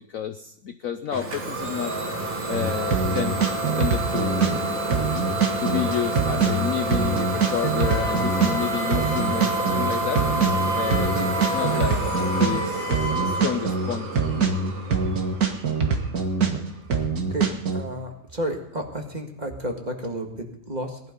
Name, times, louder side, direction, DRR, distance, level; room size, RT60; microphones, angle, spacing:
voice 1, 0.0-1.9 2.4-3.4 3.8-4.8 5.6-10.2 10.7-12.0 12.4-14.1, left 9 dB, 65° left, 9 dB, 0.9 m, -30 dB
Idling / Domestic sounds home sounds, 1.1-16.7, right 2 dB, 85° right, 3.1 m, -29 dB
sound 1, 2.5-4.6 4.9-8.6 8.9-12.6 12.9-16.6 16.9-17.8, right 5 dB, 55° right, 2.0 m, -24 dB
Wind instrument woodwind instrument, 7.8-13.5, left 1 dB, 25° left, 3.2 m, -31 dB
voice 2, 17.3-21.0, right 1 dB, 25° right, 2 dB, 1.9 m, -32 dB
18.5 x 12.0 x 5.3 m, 0.80 s
omnidirectional pair, 2.0 m